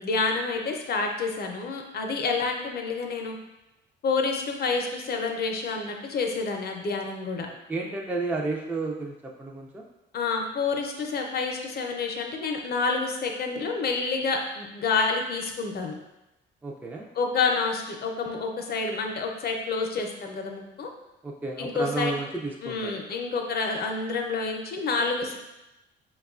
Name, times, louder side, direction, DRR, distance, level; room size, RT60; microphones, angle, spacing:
voice 1, 0.0-3.4 4.0-7.5 10.1-15.9 17.1-20.9 21.6-22.1 22.6-25.4, left 4 dB, 50° left, 2 dB, 0.6 m, -28 dB
voice 2, 7.7-9.8 16.6-17.1 21.2-22.9, right 3 dB, 10° right, 0 dB, 0.3 m, -32 dB
4.7 x 2.3 x 2.4 m, 0.95 s
cardioid pair, 90°, 20 cm